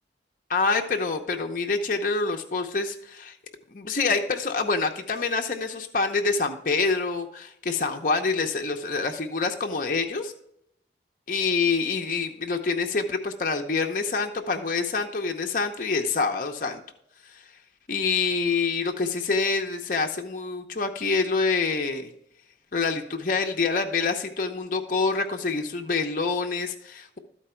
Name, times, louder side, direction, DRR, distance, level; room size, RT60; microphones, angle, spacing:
voice 1, 0.5-3.4 3.7-10.3 11.3-16.8 17.2-17.4 17.9-22.1 22.7-27.2, left 4 dB, 45° left, 3 dB, 0.8 m, -26 dB
13.5 x 4.5 x 4.5 m, 0.75 s
head